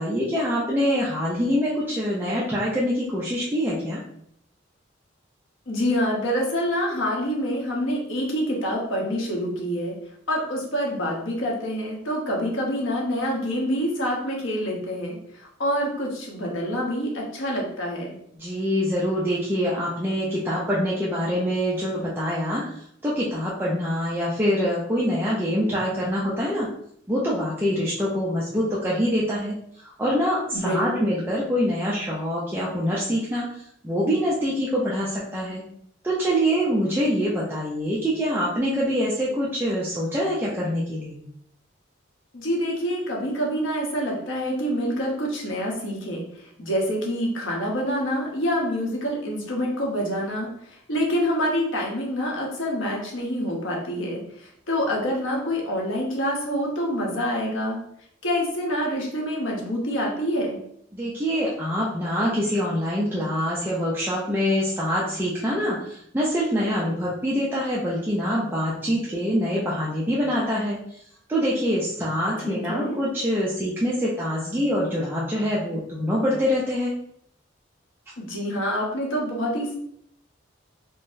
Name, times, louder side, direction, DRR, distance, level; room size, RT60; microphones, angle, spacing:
voice 1, 0.0-4.0 18.4-22.6 23.0-26.7 27.1-29.6 29.8-35.6 36.0-41.2 60.9-70.8 71.3-76.9, equal, 10° right, -7 dB, 0.4 m, -25 dB
voice 2, 5.7-10.0 10.3-18.1 30.5-31.1 42.3-57.8 58.2-60.6 72.4-73.0 78.2-79.7, equal, 80° left, -2 dB, 0.9 m, -26 dB
3.8 x 2.0 x 2.5 m, 0.69 s
head